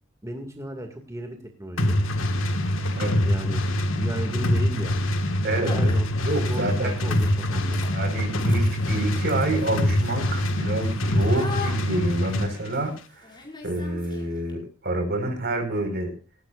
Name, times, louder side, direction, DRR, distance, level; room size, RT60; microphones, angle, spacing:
voice 1, 0.2-2.0 3.2-3.6 4.0-4.9 5.5-6.1 6.5-7.8, right 1 dB, 15° right, 3 dB, 2.2 m, -35 dB
sound 1, 1.8-12.5, left 1 dB, 70° left, 1.8 m, -24 dB
sound 2, 2.8-3.2 4.9-5.1 5.3-5.4 5.6-14.5, left 3 dB, 25° left, 6.0 m, -41 dB
voice 2, 5.4-5.9 6.2-6.9 7.9-13.3 13.6-16.1, right 2 dB, 55° right, 6 dB, 5.0 m, -28 dB
18.0 x 17.0 x 2.5 m, 0.35 s
head